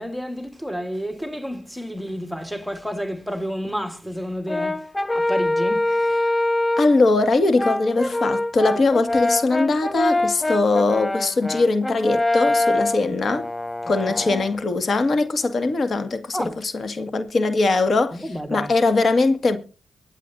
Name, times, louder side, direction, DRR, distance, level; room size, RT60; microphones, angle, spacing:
voice 1, 0.0-4.8 5.1-5.8 14.3-14.4 16.3-16.6 18.2-18.7, equal, ahead, 1.5 m, -30 dB
Brass instrument, 4.5-7.0 7.6-14.5, left 2 dB, 15° left, 0.5 m, -24 dB
voice 2, 5.9-6.3 6.8-13.5 13.9-19.6, left 3 dB, 50° left, 1.9 m, -21 dB
23.0 x 8.9 x 2.7 m
supercardioid pair, 55°, 0 cm